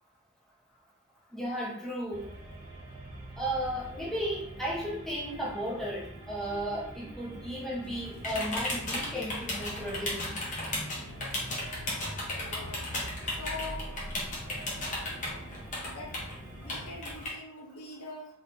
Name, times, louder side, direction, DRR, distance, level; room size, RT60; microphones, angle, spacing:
voice 1, 1.3-2.3 3.4-10.3, equal, ahead, -6 dB, 0.8 m, -34 dB
sound 1, 2.1-17.0, right 1 dB, 50° right, 1.2 m, -46 dB
sound 2, 4.4-14.5, equal, 25° right, 1.4 m, -48 dB
sound 3, 7.8-17.3, left 1 dB, 35° left, 0.9 m, -36 dB
voice 2, 12.4-12.8 13.3-13.9 15.8-16.2 16.5-18.3, left 2 dB, 80° left, 1 dB, 0.7 m, -43 dB
2.7 x 2.6 x 3.6 m, 0.69 s
head